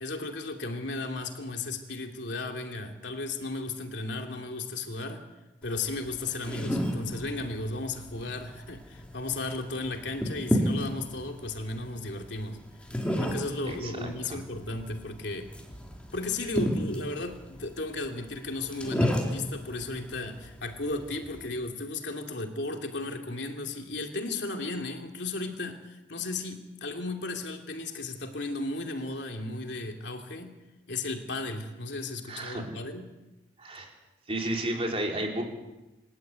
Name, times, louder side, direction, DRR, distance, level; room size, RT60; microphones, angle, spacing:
voice 1, 0.0-5.2 5.6-12.6 13.2-15.5 16.1-30.6 30.9-33.1, left 2 dB, 70° left, 3 dB, 2.8 m, -35 dB
sound 1, 5.6-21.5, equal, 5° left, 3.4 m, -33 dB
voice 2, 13.7-14.4 32.3-32.6 33.6-33.9 34.3-35.4, right 1 dB, 30° right, 1 dB, 4.1 m, -32 dB
26.0 x 12.5 x 9.4 m, 1.0 s
head